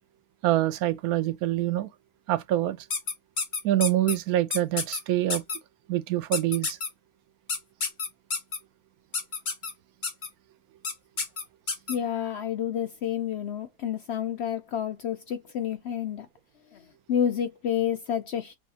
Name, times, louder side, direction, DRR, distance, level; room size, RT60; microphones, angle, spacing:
voice 1, 0.4-1.9 2.3-2.9 3.6-5.4 5.9-6.8, right 13 dB, 80° right, 1.1 m, -25 dB
sound 1, 2.9-4.2 4.5-5.0 5.3-5.6 6.3-6.9 7.5-8.6 9.1-9.7 10.0-10.3 10.8-10.9 11.2-12.0, left 4 dB, 35° left, 1.1 m, -29 dB
voice 2, 11.9-16.3 16.7-18.6, left 9 dB, 65° left, 0.6 m, -29 dB
6.1 x 2.3 x 2.7 m
omnidirectional pair, 1.5 m